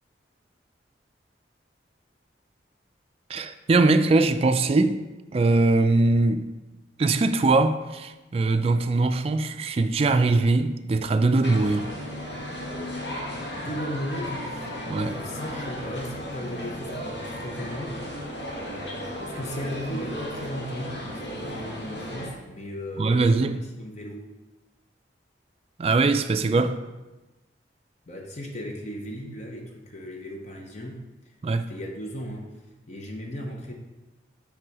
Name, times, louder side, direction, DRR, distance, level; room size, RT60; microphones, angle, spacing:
voice 1, 3.3-5.0 5.3-6.5 7.0-11.9 14.9-15.1 23.0-23.5 25.8-26.8 31.4-31.7, right 3 dB, 35° right, 0.3 m, -21 dB
sound 1, 11.4-22.3, equal, 65° left, 1.7 m, -35 dB
voice 2, 13.5-14.8 15.0-18.0 18.6-24.3 28.1-31.3 31.7-32.5 32.9-33.7, equal, 40° left, 0.7 m, -36 dB
7.8 x 3.5 x 4.8 m
head